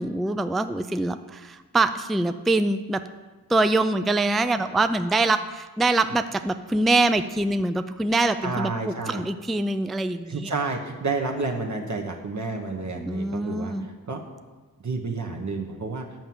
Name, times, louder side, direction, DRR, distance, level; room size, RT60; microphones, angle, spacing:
voice 1, 0.0-3.0 3.5-10.5 13.0-13.9, right 2 dB, ahead, 10 dB, 0.3 m, -24 dB
voice 2, 8.4-9.2 10.3-14.2 14.8-16.1, right 3 dB, 50° right, 2 dB, 1.1 m, -30 dB
9.0 x 5.7 x 7.7 m, 1.3 s
wide cardioid pair, 80°, 37 cm